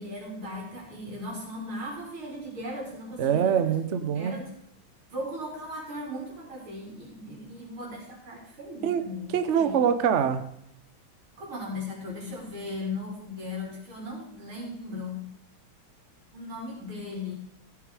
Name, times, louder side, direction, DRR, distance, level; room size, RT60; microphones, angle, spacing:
voice 1, 0.0-3.6 4.1-4.5 5.1-9.3 9.5-9.8 11.4-15.3 16.3-17.3, left 1 dB, 75° right, -2 dB, 4.8 m, -37 dB
voice 2, 3.2-4.4 8.8-9.0 9.3-10.4, right 8 dB, 60° right, 10 dB, 0.7 m, -24 dB
15.5 x 7.2 x 4.8 m, 0.74 s
omnidirectional pair, 2.3 m